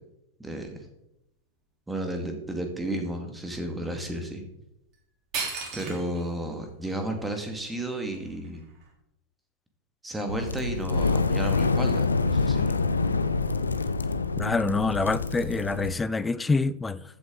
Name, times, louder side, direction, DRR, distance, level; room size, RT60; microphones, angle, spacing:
voice 1, 0.4-0.8 1.9-4.4 5.7-8.6 10.0-12.8, right 1 dB, 5° right, 2.1 m, -33 dB
sound 1, 4.9-5.0 5.3-6.3 6.9-7.0 7.5-8.9, right 4 dB, 35° right, 3.8 m, -35 dB
sound 2, 10.3-15.9, left 3 dB, 75° left, 0.7 m, -26 dB
voice 2, 14.4-17.0, left 3 dB, 10° left, 0.5 m, -26 dB
14.5 x 8.3 x 4.0 m
figure-of-eight pair, 90°, 0 cm